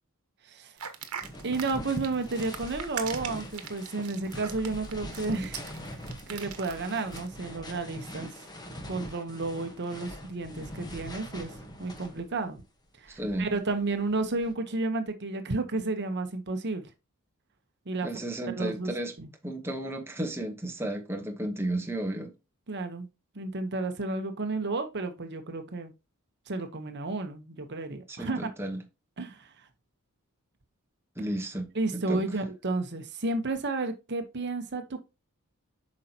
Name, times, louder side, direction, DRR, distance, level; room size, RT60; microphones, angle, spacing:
sound 1, 0.8-7.3, right 8 dB, 85° right, 1.1 m, -41 dB
sound 2, 1.2-12.5 13.1-14.5, equal, 20° left, 1.2 m, -42 dB
voice 1, 1.4-5.6 6.3-8.3 8.8-11.5 11.8-12.6 13.0-16.9 17.9-18.1 18.6-18.9 19.2-19.3 22.7-23.1 23.3-25.9 26.5-28.4 29.2-29.5 31.7-35.0, right 3 dB, 50° right, 1.0 m, -32 dB
voice 2, 13.1-13.5 18.0-19.1 19.4-22.3 28.1-28.8 31.2-31.7 31.9-32.2, right 1 dB, 10° right, 1.1 m, -33 dB
8.3 x 5.3 x 2.9 m
head